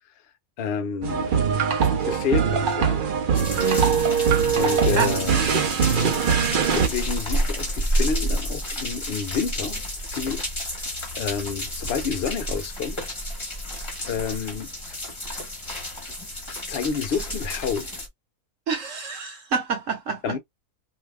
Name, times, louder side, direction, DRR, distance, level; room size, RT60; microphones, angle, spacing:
voice 1, 0.6-1.4 2.0-3.0 4.5-5.4 6.7-13.0 14.0-14.7 16.7-18.0 20.2-20.4, left 6 dB, 55° left, 0.7 m, -29 dB
sound 1, 1.0-6.9, right 7 dB, 75° right, 0.4 m, -22 dB
sound 2, 3.3-18.1, equal, 20° left, 1.1 m, -30 dB
voice 2, 3.6-3.9 4.6-5.3 18.7-20.4, right 5 dB, 60° right, 1.0 m, -28 dB
2.8 x 2.2 x 3.3 m
omnidirectional pair, 1.6 m